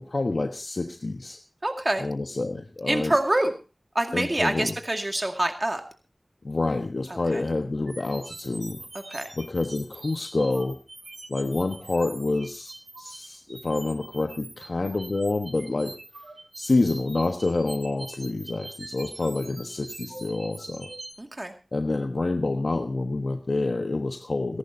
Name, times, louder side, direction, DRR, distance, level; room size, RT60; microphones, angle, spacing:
voice 1, 0.0-1.4 2.0-3.1 4.1-4.7 6.4-8.9 9.4-10.8 11.3-15.9 16.6-20.9 21.7-24.6, left 2 dB, 70° left, 5 dB, 1.2 m, -27 dB
voice 2, 1.6-2.1 2.9-3.5 3.9-5.8 7.1-7.4 9.1-9.3 21.2-21.5, right 1 dB, 35° right, 4 dB, 2.1 m, -26 dB
sound 1, 7.9-21.1, right 2 dB, 75° right, 6.2 m, -43 dB
29.0 x 11.5 x 2.7 m, 0.32 s
wide cardioid pair, 45°, 0 cm